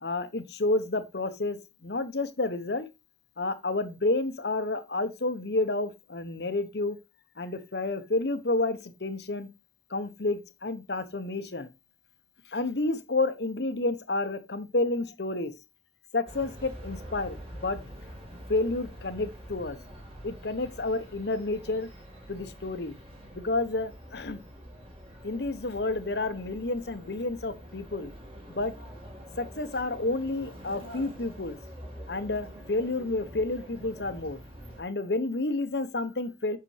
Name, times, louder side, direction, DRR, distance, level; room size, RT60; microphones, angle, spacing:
voice 1, 0.0-2.9 3.4-7.0 7.4-9.5 9.9-11.7 12.5-15.5 16.1-17.8 18.5-19.8 20.2-21.9 22.3-23.0 23.3-24.4 25.2-28.1 28.5-28.7 29.4-31.6 32.1-34.4 34.8-36.6, left 2 dB, 60° left, 1.0 m, -30 dB
sound 1, 16.3-34.8, equal, 30° right, 2.1 m, -46 dB
7.7 x 6.0 x 3.3 m
head